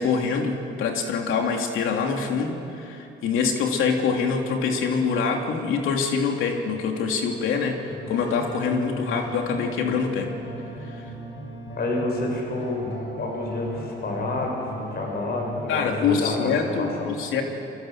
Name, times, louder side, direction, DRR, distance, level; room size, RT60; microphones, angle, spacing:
voice 1, 0.0-10.3 10.8-11.1 15.7-17.4, left 5 dB, 85° left, 2 dB, 3.2 m, -25 dB
sound 1, 7.9-16.1, equal, 70° left, 6.0 m, -37 dB
voice 2, 11.8-12.9 13.2-16.5 16.8-17.1, left 2 dB, 55° left, 0 dB, 6.9 m, -28 dB
29.5 x 23.5 x 7.8 m, 2.8 s
cardioid pair, 90°, 20 cm